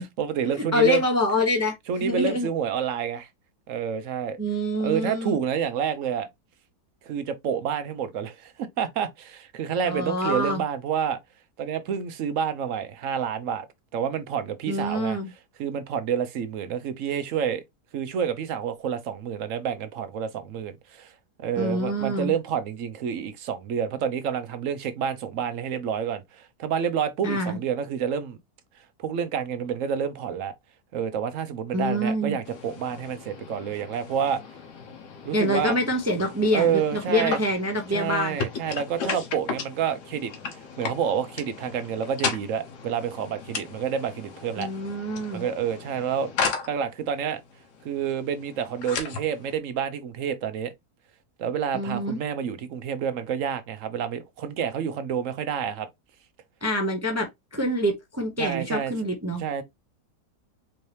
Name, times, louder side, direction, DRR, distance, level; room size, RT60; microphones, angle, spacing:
voice 1, 0.0-1.0 1.9-3.3 3.7-4.4 4.8-6.3 7.0-11.2 11.6-13.7 13.9-15.2 15.6-17.6 17.9-21.1 21.4-28.4 29.0-30.5 30.9-34.4 35.2-35.8 36.5-37.4 37.9-44.7 45.3-46.3 46.7-47.4 47.8-50.7 51.4-55.9 58.4-58.9 59.4-59.6, right 8 dB, 60° right, 0.9 m, -28 dB
voice 2, 0.7-2.5 4.4-5.4 9.8-10.6 14.7-15.3 21.6-22.3 27.2-27.6 31.7-32.4 35.3-38.4 44.6-45.4 51.7-52.2 56.6-59.4, left 1 dB, 25° right, 0.3 m, -26 dB
sound 1, 32.4-49.6, left 5 dB, 80° left, 1.6 m, -36 dB
4.5 x 2.8 x 3.2 m
omnidirectional pair, 1.7 m